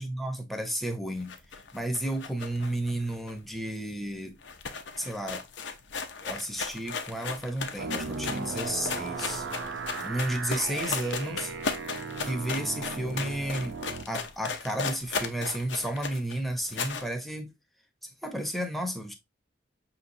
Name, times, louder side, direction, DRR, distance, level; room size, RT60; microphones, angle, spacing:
voice 1, 0.0-1.3 1.7-4.4 5.0-5.4 6.2-9.5 10.0-11.5 12.2-13.8 14.1-17.5 18.0-19.1, right 1 dB, ahead, 0.7 m, -32 dB
sound 1, 1.2-3.8 4.1-4.2 4.4-17.1, left 5 dB, 80° left, 0.7 m, -36 dB
sound 2, 7.8-14.0, right 4 dB, 75° right, 0.6 m, -36 dB
5.7 x 2.9 x 2.6 m
head